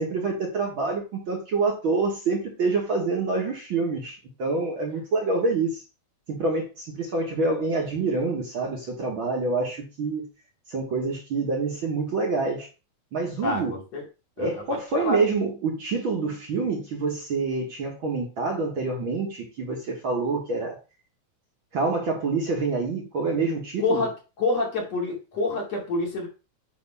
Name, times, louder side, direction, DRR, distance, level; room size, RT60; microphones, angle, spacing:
voice 1, 0.0-5.8 6.3-10.3 10.7-12.7 13.1-13.7 14.4-20.8 21.7-24.1, right 3 dB, 50° right, 0 dB, 1.9 m, -27 dB
voice 2, 13.4-14.0 14.4-14.6 14.9-15.2 23.8-26.3, left 3 dB, 60° left, -2 dB, 3.8 m, -27 dB
8.5 x 3.4 x 5.5 m, 0.30 s
omnidirectional pair, 3.4 m